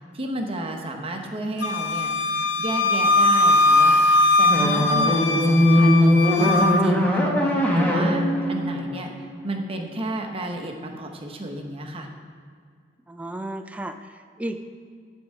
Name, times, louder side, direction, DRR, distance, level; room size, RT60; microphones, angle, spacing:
voice 1, 0.1-2.1 2.6-9.1 9.4-12.1, right 1 dB, 30° right, 3 dB, 0.9 m, -32 dB
Wind instrument woodwind instrument, 1.6-6.8, left 2 dB, 85° left, 0.6 m, -20 dB
sound 1, 4.5-9.6, left 1 dB, 10° left, 1.3 m, -20 dB
voice 2, 13.1-14.6, right 1 dB, 10° right, 6 dB, 0.4 m, -33 dB
11.0 x 4.5 x 6.4 m, 2.1 s
head